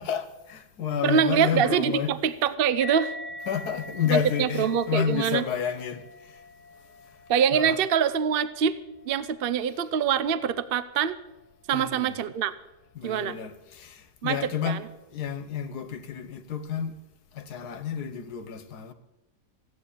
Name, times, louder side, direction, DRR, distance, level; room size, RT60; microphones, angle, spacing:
voice 1, 0.0-2.1 3.5-6.4 7.5-7.8 11.7-12.1 12.9-14.8 15.1-17.0 17.3-18.9, left 7 dB, 70° left, 1.7 m, -30 dB
voice 2, 1.0-3.1 4.1-5.4 7.3-8.8 9.1-11.2 11.7-12.5 13.0-13.3 14.2-14.4 14.7-14.8, right 8 dB, 55° right, 0.7 m, -24 dB
sound 1, 2.8-9.7, left 1 dB, 50° left, 1.9 m, -43 dB
15.0 x 9.3 x 8.6 m
omnidirectional pair, 1.7 m